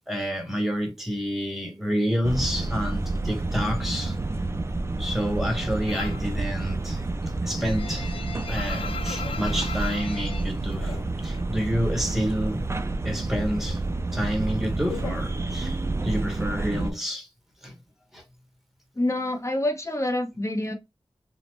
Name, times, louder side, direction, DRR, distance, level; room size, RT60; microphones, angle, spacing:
voice 1, 0.0-4.2 5.0-7.0 7.4-8.1 8.5-11.0 11.2-12.6 13.0-13.8 14.1-15.8 16.0-17.3 17.6-17.7 18.1-18.2, equal, 5° right, 1.0 m, -29 dB
sound 1, 2.2-16.9, right 2 dB, 30° right, 0.4 m, -29 dB
sound 2, 5.9-6.3 6.7-11.5 11.8-12.9 13.1-16.0, left 5 dB, 70° left, 0.3 m, -38 dB
voice 2, 19.0-20.7, left 1 dB, 30° left, 0.8 m, -27 dB
2.9 x 2.1 x 2.9 m
wide cardioid pair, 60°, 10 cm